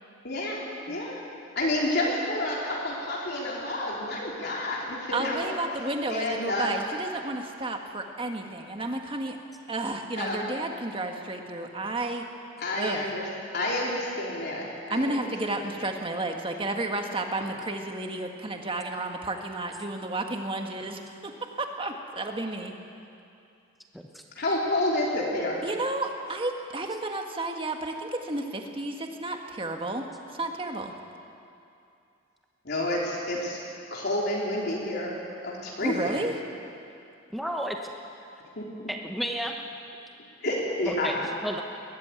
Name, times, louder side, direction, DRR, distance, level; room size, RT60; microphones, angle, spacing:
voice 1, 0.2-0.6 0.9-1.2 1.5-5.5 6.1-6.7 10.1-10.4 12.6-13.2 13.5-15.3 24.4-25.6 32.6-33.6 33.9-36.1 38.6-38.7 40.4-41.1, left 1 dB, 55° left, -4 dB, 3.4 m, -29 dB
voice 2, 5.1-9.4 9.7-12.2 12.8-13.1 14.9-22.7 25.6-30.0 30.3-30.9 35.8-36.3, right 2 dB, 25° right, 3 dB, 1.6 m, -32 dB
voice 3, 37.3-37.8 38.9-39.6 40.9-41.6, equal, ahead, 2 dB, 1.0 m, -32 dB
21.0 x 14.5 x 9.3 m, 2.6 s
head